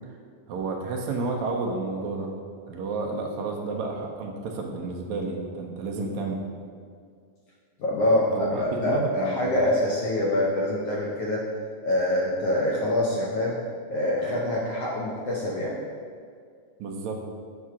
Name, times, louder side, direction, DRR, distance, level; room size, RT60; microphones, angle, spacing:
voice 1, 0.5-2.3 2.7-6.4 8.0-9.5 16.8-17.2, right 3 dB, 75° right, 0 dB, 2.0 m, -31 dB
voice 2, 7.8-11.4 11.8-13.6 13.9-15.8, left 1 dB, 70° left, -4 dB, 1.5 m, -25 dB
7.4 x 3.6 x 5.8 m, 2.1 s
omnidirectional pair, 3.5 m